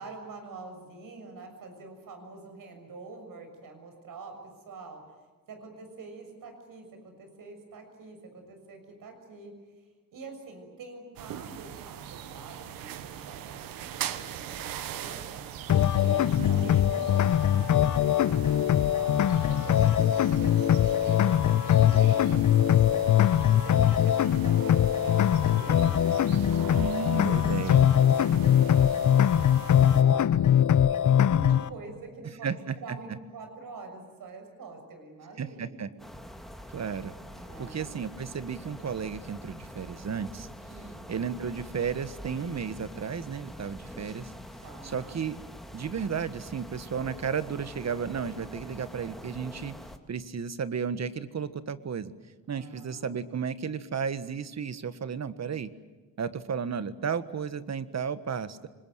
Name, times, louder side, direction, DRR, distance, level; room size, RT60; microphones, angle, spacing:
voice 1, 0.0-5.0 5.5-9.5 10.1-15.4 16.0-23.1 23.4-27.4 27.9-35.9 37.3-37.9 40.7-41.1 44.6-45.2 52.5-53.4, right 3 dB, 75° right, 5 dB, 6.7 m, -46 dB
sound 1, 11.2-30.0, right 10 dB, 90° right, 1.2 m, -41 dB
sound 2, 15.7-31.7, left 10 dB, 60° left, 0.9 m, -22 dB
voice 2, 16.4-16.8 26.7-27.9 32.4-33.0 35.4-35.9 36.7-37.1 37.6-40.5 41.1-44.3 44.8-45.4 45.7-49.8 50.1-52.1 52.5-55.7 56.2-58.7, right 6 dB, 50° right, 13 dB, 1.5 m, -33 dB
sound 3, 36.0-50.0, equal, ahead, 2.6 m, -45 dB
25.5 x 21.0 x 9.3 m, 1.2 s
supercardioid pair, 60°, 34 cm